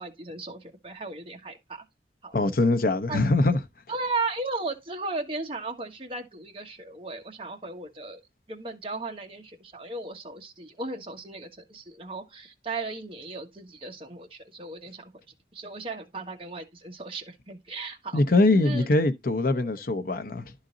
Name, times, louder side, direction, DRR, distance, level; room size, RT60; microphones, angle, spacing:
voice 1, 0.0-1.8 2.2-2.3 3.1-3.2 3.9-8.2 8.5-15.1 15.5-18.2 18.5-18.9, right 3 dB, 30° right, 1.3 m, -36 dB
voice 2, 2.3-3.6 18.1-20.5, left 2 dB, 55° left, 0.8 m, -22 dB
11.0 x 4.0 x 3.8 m
head